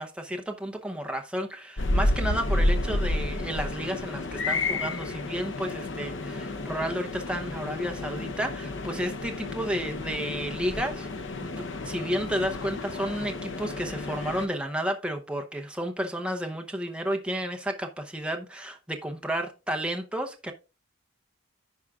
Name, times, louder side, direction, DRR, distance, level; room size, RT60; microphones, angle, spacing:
voice 1, 0.0-20.5, equal, 5° right, 0.7 m, -32 dB
sound 1, 1.8-14.5, left 2 dB, 60° left, 0.7 m, -31 dB
14.5 x 4.8 x 2.3 m
head